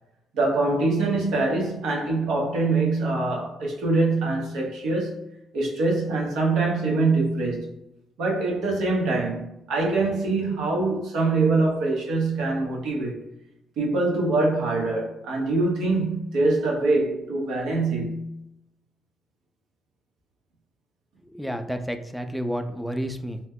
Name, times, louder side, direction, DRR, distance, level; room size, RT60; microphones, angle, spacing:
voice 1, 0.3-5.2 5.5-7.7 8.2-13.2 13.8-18.3, right 3 dB, 80° right, 0.9 m, -24 dB
voice 2, 21.3-23.4, equal, ahead, 0.4 m, -30 dB
2.8 x 2.1 x 3.5 m
supercardioid pair, 70°, 0 cm